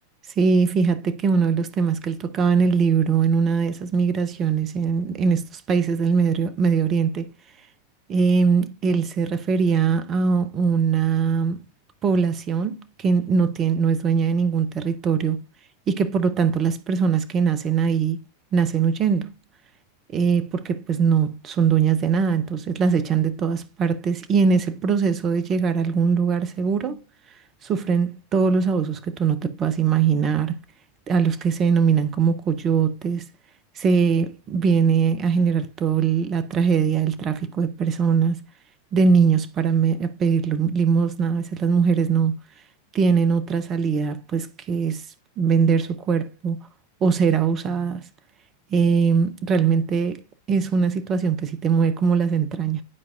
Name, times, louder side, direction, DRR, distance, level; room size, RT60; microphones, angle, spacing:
voice 1, 0.4-7.3 8.1-11.6 12.0-15.4 15.9-18.2 18.5-19.3 20.1-27.0 27.6-30.6 31.1-33.2 33.8-38.4 38.9-42.3 42.9-45.0 45.4-46.6 47.0-48.0 48.7-50.2 50.5-52.8, right 6 dB, 30° right, 0.7 m, -21 dB
11.0 x 4.6 x 2.5 m
figure-of-eight pair, 90°, 0 cm